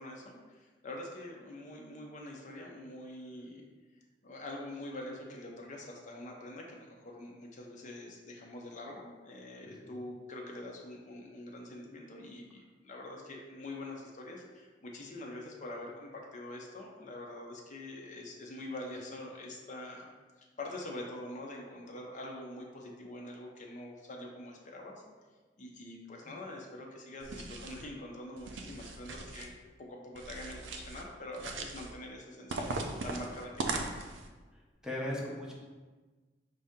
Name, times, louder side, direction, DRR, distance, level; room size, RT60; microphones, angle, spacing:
voice 1, 0.0-3.7 4.2-20.1 20.4-24.9 25.6-29.5 29.8-32.8 33.0-33.9, left 1 dB, 45° left, 0 dB, 0.6 m, -45 dB
sound 1, 27.2-27.9 28.4-29.5 30.1-31.0 31.3-31.9 32.5-34.3, right 3 dB, 85° right, 0.5 m, -39 dB
voice 2, 34.5-35.5, left 1 dB, 5° right, -4 dB, 0.6 m, -39 dB
5.4 x 2.7 x 3.6 m, 1.3 s
head